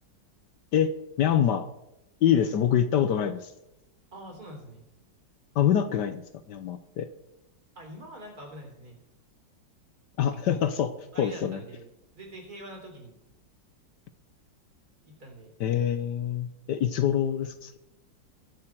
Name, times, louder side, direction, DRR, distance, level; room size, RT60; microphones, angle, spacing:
voice 1, 0.7-1.7 2.2-3.5 5.5-6.2 6.5-7.1 10.2-10.9 11.2-11.6 15.6-17.7, left 9 dB, 70° left, 10 dB, 1.3 m, -25 dB
voice 2, 4.1-4.8 7.8-9.0 10.4-10.6 11.1-13.1 15.0-15.5, right 1 dB, 50° right, 1 dB, 4.0 m, -45 dB
22.0 x 7.5 x 4.6 m, 0.88 s
omnidirectional pair, 2.1 m